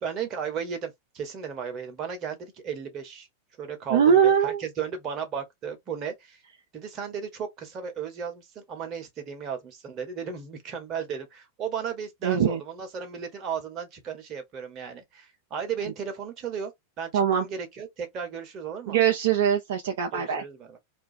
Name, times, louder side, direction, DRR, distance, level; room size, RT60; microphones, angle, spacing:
voice 1, 0.0-3.3 3.6-6.4 6.7-16.7 17.0-19.0 20.1-20.8, right 7 dB, 35° right, 0.9 m, -35 dB
voice 2, 3.9-4.6 12.2-12.6 17.1-17.5 18.9-20.4, right 8 dB, 55° right, 0.4 m, -22 dB
2.5 x 2.2 x 2.6 m
figure-of-eight pair, 90°, 0 cm